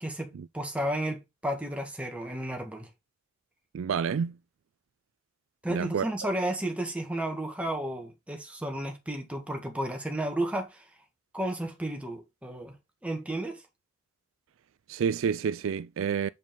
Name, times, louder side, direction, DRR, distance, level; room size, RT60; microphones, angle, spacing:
voice 1, 0.0-2.9 5.6-10.8 11.3-12.7 13.0-13.6, right 1 dB, 5° right, 1.6 m, -33 dB
voice 2, 3.7-4.4 5.7-6.1 14.9-16.3, right 7 dB, 65° right, 0.3 m, -29 dB
6.9 x 5.2 x 3.8 m
head